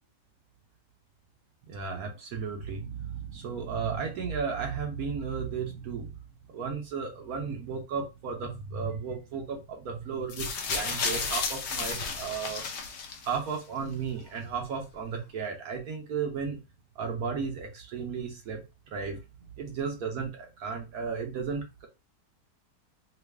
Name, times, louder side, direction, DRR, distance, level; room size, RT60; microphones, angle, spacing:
voice 1, 1.7-6.1 6.5-12.6 13.2-16.6 17.0-19.2 19.6-21.9, right 6 dB, 65° right, 2 dB, 1.0 m, -34 dB
sound 1, 10.3-13.5 14.4-14.5, left 5 dB, 80° left, 0.6 m, -32 dB
3.0 x 2.4 x 3.3 m, 0.28 s
omnidirectional pair, 1.8 m